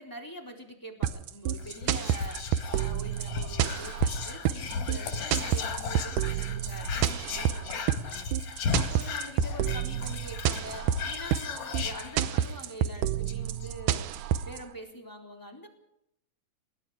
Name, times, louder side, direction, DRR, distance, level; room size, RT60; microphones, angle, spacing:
voice 1, 0.0-2.4 2.7-8.3 8.8-14.1 14.4-15.7, right 1 dB, 5° left, 3 dB, 3.5 m, -44 dB
sound 1, 1.0-14.6, right 10 dB, 75° right, 2.4 m, -29 dB
Whispering, 1.6-12.6 13.0-13.1 13.3-13.7, left 5 dB, 50° left, 2.9 m, -36 dB
sound 2, 3.9-11.3, left 6 dB, 90° left, 5.4 m, -52 dB
28.0 x 19.5 x 4.9 m, 0.78 s
omnidirectional pair, 3.8 m